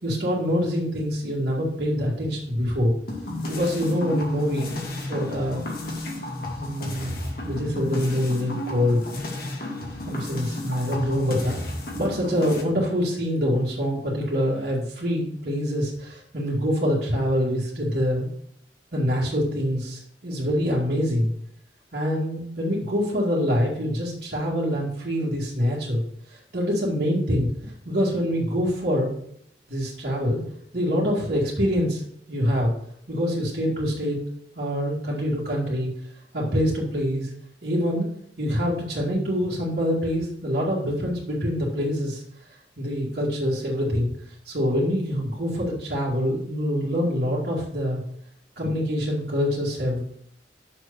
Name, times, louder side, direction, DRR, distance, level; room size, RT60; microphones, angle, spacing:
voice 1, 0.0-2.9 3.5-5.6 6.6-9.0 10.0-18.3 18.9-21.3 21.9-26.0 26.3-29.1 29.7-30.4 30.7-32.0 32.3-32.7 33.1-34.2 34.6-35.9 36.3-37.3 37.6-38.1 38.4-42.2 42.8-44.1 44.5-48.0 48.6-50.0, equal, 55° right, -8 dB, 2.2 m, -25 dB
sound 1, 3.1-12.6, left 1 dB, 55° left, 2.1 m, -33 dB
6.9 x 4.7 x 6.7 m, 0.69 s
head